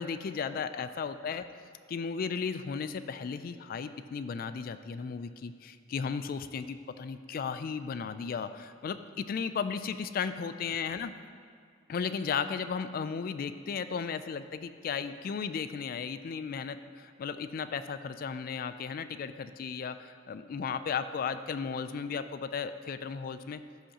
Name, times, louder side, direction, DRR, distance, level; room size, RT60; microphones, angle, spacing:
voice 1, 0.0-1.5 1.9-11.1 11.9-23.6, left 6 dB, 50° left, 12 dB, 0.3 m, -35 dB
13.0 x 5.2 x 2.9 m, 2.2 s
head